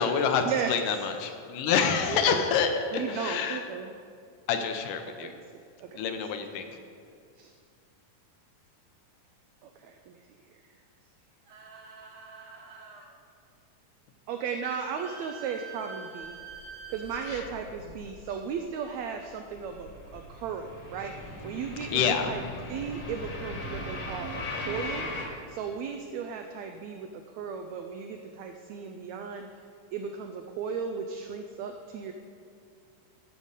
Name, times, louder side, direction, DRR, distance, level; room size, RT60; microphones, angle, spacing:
voice 1, 0.0-3.7 4.5-5.3 5.9-6.7 17.3-17.5 21.9-22.6, left 6 dB, 80° left, 6 dB, 2.3 m, -27 dB
voice 2, 2.9-3.9 5.2-5.4 5.8-6.0 7.4-7.5 9.6-10.2 14.3-16.4 16.9-22.4 22.7-25.1 25.5-29.5 29.9-32.1, right 6 dB, 85° right, 5 dB, 1.5 m, -36 dB
sound 1, 11.5-13.1 14.9-17.5, right 5 dB, 60° right, 2.2 m, -45 dB
sound 2, 16.2-18.5 18.8-25.3, left 1 dB, 50° left, 1.8 m, -39 dB
13.0 x 5.3 x 6.5 m, 2.2 s
omnidirectional pair, 3.8 m